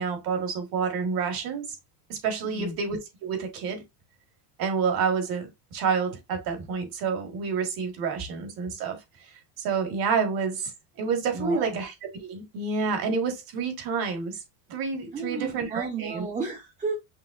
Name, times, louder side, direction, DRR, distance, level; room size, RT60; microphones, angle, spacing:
voice 1, 0.0-1.8 2.1-3.8 4.6-9.0 9.6-10.7 11.0-14.4 14.7-16.3, right 5 dB, 50° right, 1.7 m, -29 dB
voice 2, 2.4-2.8 11.3-11.8 15.1-17.0, right 3 dB, 15° right, 0.7 m, -33 dB
5.6 x 3.4 x 2.4 m
cardioid pair, 145°, 47 cm